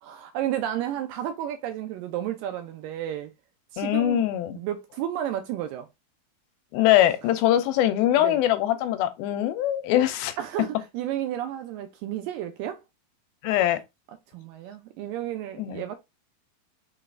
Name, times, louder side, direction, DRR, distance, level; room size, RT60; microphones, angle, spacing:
voice 1, 0.0-3.3 3.7-4.3 4.6-5.9 7.5-7.6 8.2-8.4 10.4-12.8 14.3-16.0, right 11 dB, 80° right, 2.0 m, -32 dB
voice 2, 3.8-4.6 6.7-10.4 13.4-13.8 15.6-15.8, left 13 dB, 85° left, 2.4 m, -22 dB
5.4 x 3.9 x 2.4 m
omnidirectional pair, 4.3 m